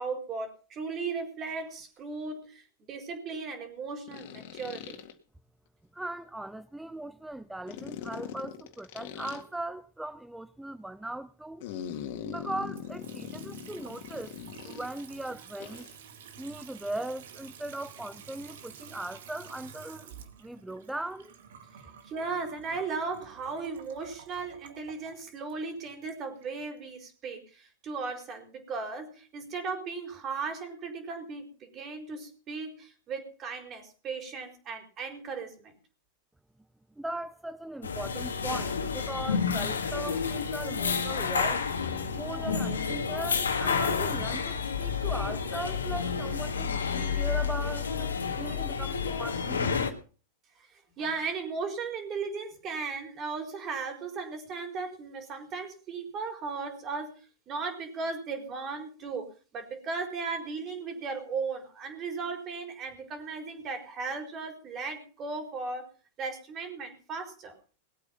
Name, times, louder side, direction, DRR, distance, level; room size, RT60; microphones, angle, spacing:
voice 1, 0.0-5.0 22.0-35.7 41.2-41.4 50.6-57.1 57.5-65.9 66.2-67.5, right 4 dB, 35° right, 4.4 m, -36 dB
sound 1, 1.5-1.6 4.1-5.1 7.7-9.4 11.6-15.0 15.6-16.0, left 9 dB, 60° left, 2.0 m, -41 dB
voice 2, 5.9-11.7 12.2-14.3 14.6-15.8 16.4-20.1 20.4-21.3 37.0-41.7 42.1-49.8, right 1 dB, 5° right, 0.6 m, -39 dB
Water tap faucet / Sink (filling or washing) / Trickle dribble, 12.7-26.8, right 7 dB, 70° right, 2.1 m, -50 dB
sound 2, 37.8-49.9, left 6 dB, 85° left, 1.7 m, -30 dB
19.5 x 8.6 x 5.7 m
hypercardioid pair, 100°, 0 cm